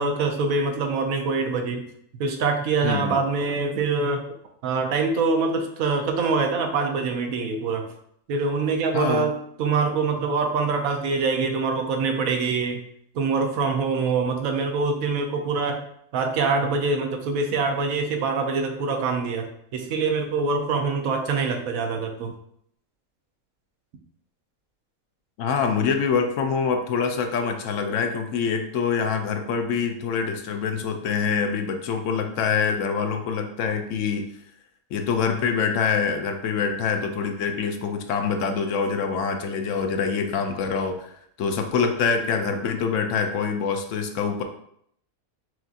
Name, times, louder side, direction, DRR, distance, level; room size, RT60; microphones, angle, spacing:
voice 1, 0.0-1.9 2.1-4.2 4.6-7.9 8.3-12.8 13.1-15.8 16.1-22.3, right 4 dB, 75° right, 4 dB, 1.0 m, -24 dB
voice 2, 2.8-3.2 8.9-9.3 25.4-34.2 34.9-44.4, left 6 dB, 70° left, 5 dB, 0.8 m, -25 dB
6.0 x 2.6 x 2.4 m, 0.70 s
omnidirectional pair, 1.5 m